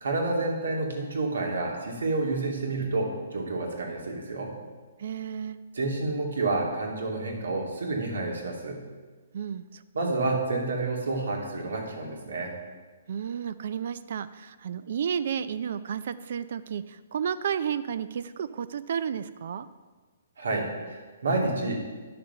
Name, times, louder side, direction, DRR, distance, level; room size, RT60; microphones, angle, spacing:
voice 1, 0.0-4.5 5.7-8.8 9.9-12.5 20.4-21.8, right 2 dB, 90° right, 0 dB, 2.5 m, -29 dB
voice 2, 5.0-5.6 9.3-10.1 13.1-19.7, right 8 dB, 50° right, 14 dB, 0.4 m, -32 dB
10.5 x 6.7 x 5.6 m, 1.4 s
hypercardioid pair, 165°, 0 cm